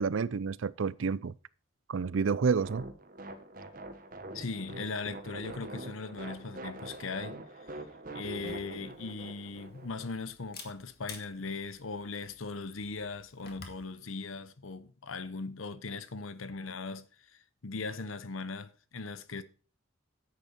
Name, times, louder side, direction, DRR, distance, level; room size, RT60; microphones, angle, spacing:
voice 1, 0.0-1.3 1.9-2.9, right 5 dB, 75° right, 0.5 m, -29 dB
sound 1, 2.6-10.1, right 2 dB, 45° right, 1.4 m, -44 dB
voice 2, 4.3-7.4 8.1-17.1 17.6-19.4, left 4 dB, 85° left, 1.0 m, -39 dB
Camera, 8.3-13.8, left 5 dB, 50° left, 2.1 m, -52 dB
10.5 x 8.3 x 4.3 m
head